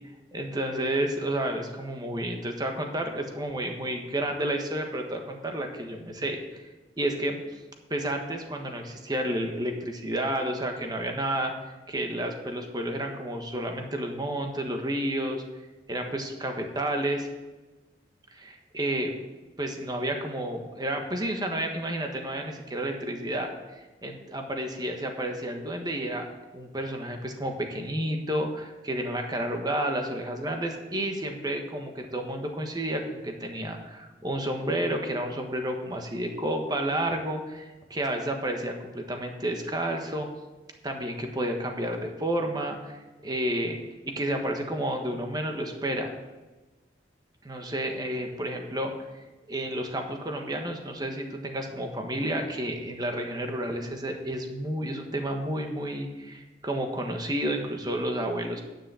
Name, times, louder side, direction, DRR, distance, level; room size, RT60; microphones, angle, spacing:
voice 1, 0.3-6.6 7.0-7.4 7.9-11.5 11.9-15.4 15.9-17.3 18.3-19.1 19.6-26.3 26.5-40.3 40.8-46.1 47.4-48.9 49.5-58.6, right 1 dB, 25° right, 3 dB, 1.4 m, -31 dB
10.0 x 6.2 x 7.5 m, 1.1 s
head